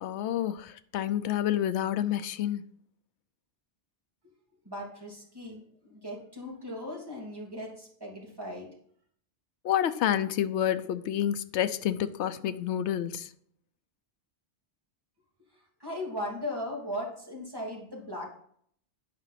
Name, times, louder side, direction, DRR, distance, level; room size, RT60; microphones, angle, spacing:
voice 1, 0.0-2.6 9.6-13.3, left 10 dB, 80° left, 0.9 m, -29 dB
voice 2, 4.6-8.7 15.8-18.4, left 1 dB, 20° right, 3.2 m, -38 dB
9.8 x 5.1 x 5.8 m
omnidirectional pair, 1.2 m